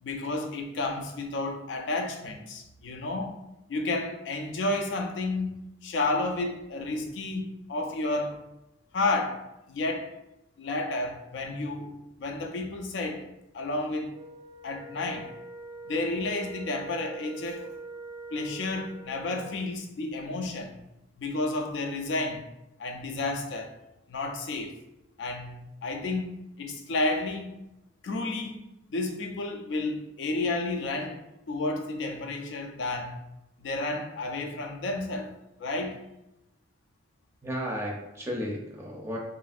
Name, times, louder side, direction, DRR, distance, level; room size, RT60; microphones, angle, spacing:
voice 1, 0.0-3.4 3.7-8.4 8.9-10.1 10.6-13.3 13.5-14.2 14.6-15.3 15.9-17.7 18.3-20.8 21.2-22.4 22.8-23.8 24.1-24.8 25.2-27.5 28.0-28.6 28.9-33.2 33.6-35.3 35.6-36.0, left 2 dB, 70° left, 0.4 m, -31 dB
Wind instrument woodwind instrument, 14.1-19.7, right 3 dB, 70° right, 0.5 m, -44 dB
voice 2, 37.4-39.2, equal, 15° right, 0.5 m, -33 dB
3.0 x 2.5 x 2.4 m
head